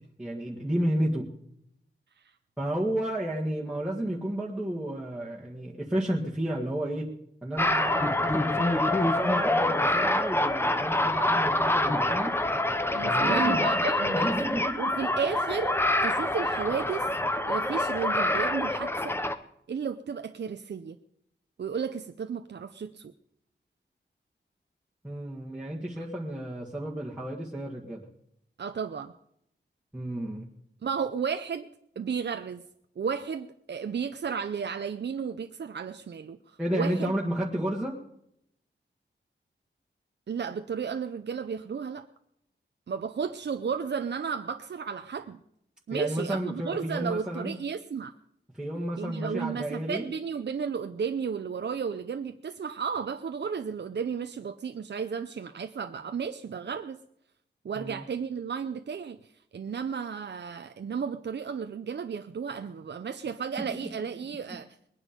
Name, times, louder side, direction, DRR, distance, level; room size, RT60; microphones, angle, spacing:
voice 1, 0.2-1.3 2.6-7.1 7.4-12.3 13.0-13.8 14.1-14.8 25.0-28.0 29.9-30.5 36.6-38.0 45.9-47.6 48.6-50.1 57.8-58.0, right 1 dB, 5° right, -6 dB, 1.8 m, -31 dB
sound 1, 7.6-19.4, left 1 dB, 10° left, 0.8 m, -26 dB
voice 2, 12.9-14.4 14.8-17.1 17.4-19.2 19.7-21.0 21.6-23.1 28.6-29.1 30.8-31.7 32.0-32.6 33.0-37.1 40.3-42.1 42.9-45.4 45.9-48.1 49.0-57.0 57.6-59.2 59.5-64.7, right 6 dB, 65° right, 8 dB, 0.6 m, -33 dB
21.0 x 9.9 x 5.2 m, 0.74 s
wide cardioid pair, 125°, 20 cm